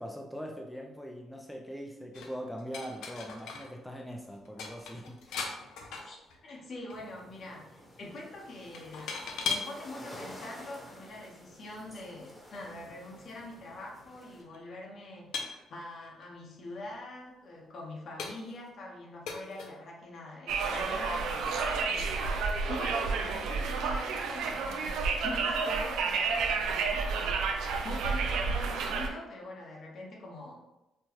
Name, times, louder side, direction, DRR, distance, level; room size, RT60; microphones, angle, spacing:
voice 1, 0.0-5.5, equal, 5° left, 1 dB, 0.5 m, -42 dB
sound 1, 2.1-3.7 4.0-4.1 4.4-6.6 6.9-7.2 8.7-9.7 10.6-10.7 13.2-13.3 13.5-13.6 14.4-14.6 15.3-16.3 16.9-17.0 17.5-17.6 18.2-18.7 19.3-19.8, left 5 dB, 85° left, 0.5 m, -39 dB
voice 2, 6.4-30.6, left 2 dB, 60° left, -2 dB, 1.0 m, -44 dB
sound 2, 6.9-14.4, equal, 25° left, 1.1 m, -51 dB
Conversation, 20.5-29.1, right 4 dB, 90° right, 0.5 m, -30 dB
4.5 x 2.2 x 2.9 m, 0.96 s
cardioid pair, 90°, 0 cm